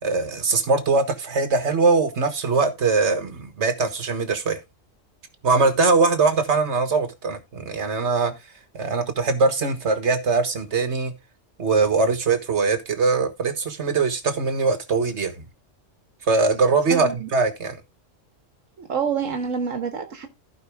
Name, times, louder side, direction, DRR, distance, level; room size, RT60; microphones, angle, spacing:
voice 1, 0.0-4.6 5.4-8.3 8.7-11.1 11.6-15.3 16.3-17.8, right 4 dB, 60° right, 1.7 m, -21 dB
voice 2, 16.9-17.3 18.8-20.3, right 6 dB, 80° right, 1.5 m, -27 dB
15.0 x 5.4 x 3.5 m
omnidirectional pair, 1.3 m